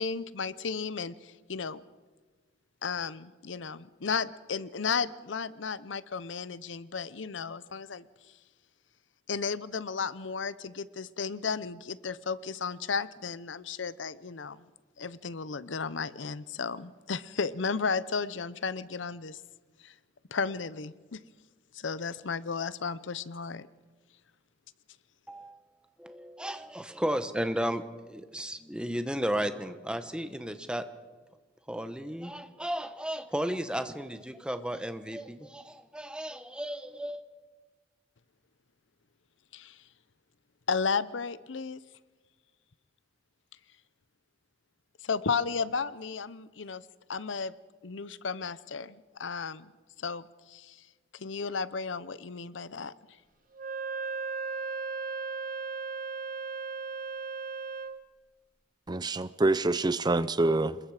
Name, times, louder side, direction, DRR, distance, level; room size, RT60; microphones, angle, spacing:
voice 1, 0.0-1.8 2.8-8.0 9.3-14.6 15.0-19.4 19.8-19.9 20.3-21.2 21.7-23.7 39.5-39.8 40.7-41.8 45.0-46.8 47.1-47.5 47.8-49.7 50.0-50.8 51.1-52.9, left 5 dB, 80° left, 17 dB, 0.8 m, -34 dB
voice 2, 25.3-25.7 26.0-30.9 31.7-37.2, equal, 5° right, 9 dB, 1.1 m, -34 dB
Wind instrument woodwind instrument, 53.5-58.0, right 4 dB, 50° right, 0.9 m, -36 dB
voice 3, 58.9-60.9, right 2 dB, 20° right, 15 dB, 0.6 m, -26 dB
27.0 x 21.5 x 5.0 m, 1.3 s
head